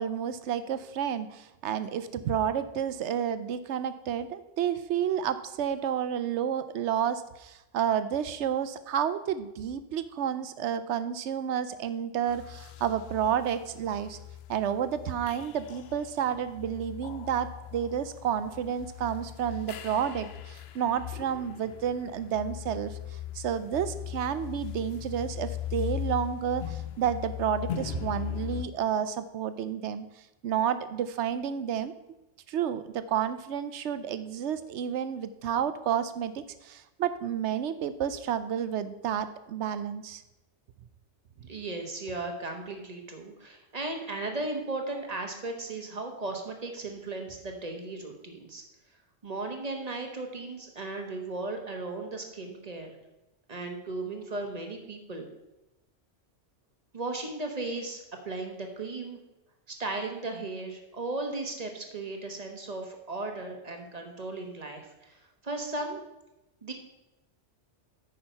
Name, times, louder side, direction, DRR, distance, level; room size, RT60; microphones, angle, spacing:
voice 1, 0.0-14.2 14.5-23.0 23.3-30.1 30.4-31.9 32.5-40.2, right 9 dB, 70° right, 13 dB, 0.9 m, -30 dB
sound 1, 12.3-28.7, left 11 dB, 65° left, 0.8 m, -39 dB
voice 2, 41.5-48.6 49.2-52.9 53.5-55.3 56.9-59.2 59.7-66.0 66.6-66.7, right 2 dB, 35° right, 3 dB, 1.3 m, -36 dB
8.8 x 5.2 x 5.6 m, 0.95 s
omnidirectional pair, 1.3 m